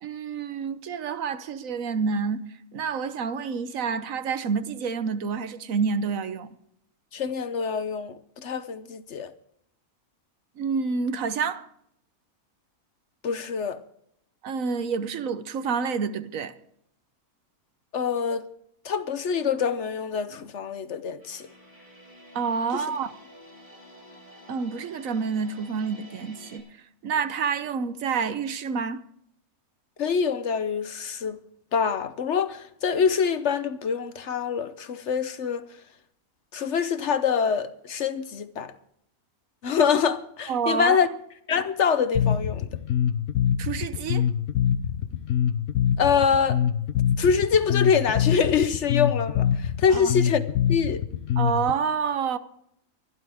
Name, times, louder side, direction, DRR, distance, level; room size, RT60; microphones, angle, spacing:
voice 1, 0.0-2.4 2.7-6.5 10.6-11.7 14.4-16.5 22.3-23.1 24.5-26.7 27.0-29.0 40.5-41.0 43.6-44.3 49.9-50.1 51.4-52.4, right 5 dB, 70° right, 1.2 m, -28 dB
voice 2, 7.1-9.3 13.2-13.8 17.9-18.4 18.8-21.5 22.7-22.8 30.0-31.4 31.7-35.7 36.5-38.7 39.6-41.1 41.5-42.7 46.0-46.6 47.2-50.4 50.7-51.0, left 6 dB, 60° left, 1.0 m, -25 dB
sound 1, 21.2-26.6, equal, 15° right, 7.3 m, -49 dB
Bass guitar, 42.1-51.7, left 9 dB, 75° left, 1.2 m, -24 dB
24.5 x 11.0 x 3.5 m
omnidirectional pair, 1.5 m